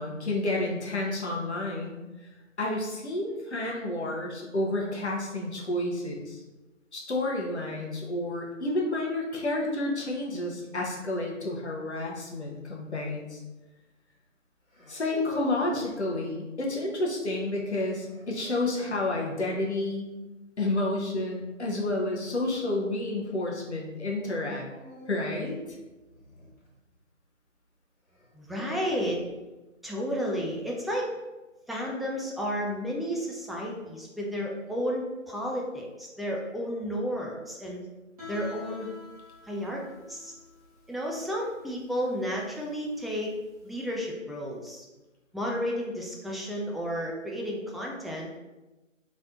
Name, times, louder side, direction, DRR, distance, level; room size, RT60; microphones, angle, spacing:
voice 1, 0.0-2.0 2.6-6.4 6.9-13.4 14.9-20.1 20.6-24.6 25.1-25.6, left 2 dB, 55° left, -1 dB, 0.9 m, -30 dB
sound 1, 12.8-13.2 14.7-16.0 18.0-19.0 21.5-21.9 24.6-27.0 28.1-29.4, left 1 dB, 90° left, 1.4 m, -45 dB
voice 2, 28.3-29.2 29.8-31.1 31.7-37.8 38.3-38.9 39.5-39.8 40.1-40.3 40.9-43.4 43.6-44.8 45.3-48.4, equal, ahead, -3 dB, 0.3 m, -32 dB
Guitar, 38.2-43.9, left 4 dB, 25° right, 1.3 m, -48 dB
4.1 x 3.2 x 2.4 m, 1.1 s
figure-of-eight pair, 160°, 40 cm